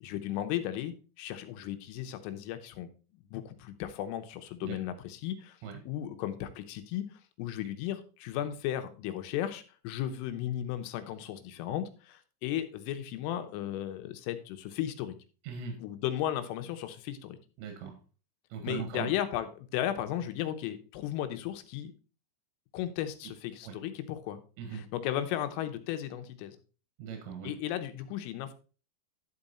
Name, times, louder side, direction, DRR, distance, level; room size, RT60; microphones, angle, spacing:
voice 1, 0.0-5.6 5.8-7.0 7.4-15.2 15.8-17.4 18.6-21.9 22.7-24.4 24.7-26.6 27.4-28.5, left 11 dB, 90° left, 9 dB, 3.5 m, -35 dB
voice 2, 15.4-15.8 17.6-18.0 18.5-19.1 23.2-23.3 23.6-23.8 24.6-24.9 27.0-27.6, right 6 dB, 85° right, 5 dB, 3.9 m, -39 dB
11.5 x 5.2 x 4.2 m, 0.36 s
omnidirectional pair, 5.7 m